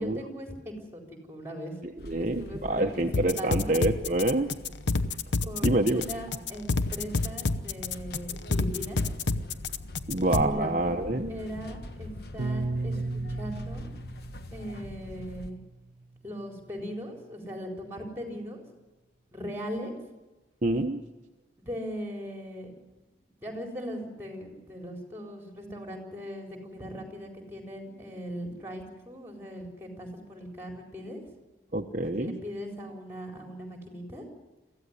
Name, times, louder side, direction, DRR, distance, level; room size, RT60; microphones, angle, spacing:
voice 1, 0.0-1.8 2.2-3.8 5.4-9.0 10.2-11.0 11.3-13.9 14.5-15.6 16.2-18.6 19.3-19.9 21.6-22.7 23.4-31.2 32.1-34.2, equal, 15° right, 2 dB, 4.3 m, -39 dB
sound 1, 2.0-15.5, left 1 dB, 60° left, 1.3 m, -44 dB
voice 2, 2.1-4.5 5.6-6.1 10.1-11.4 20.6-21.0 31.7-32.4, right 2 dB, 45° right, 3 dB, 1.0 m, -26 dB
sound 2, 3.1-10.4, left 3 dB, 80° left, 0.9 m, -28 dB
Piano, 12.4-16.8, right 2 dB, 80° right, 0.7 m, -36 dB
23.0 x 15.0 x 9.8 m, 1.1 s
head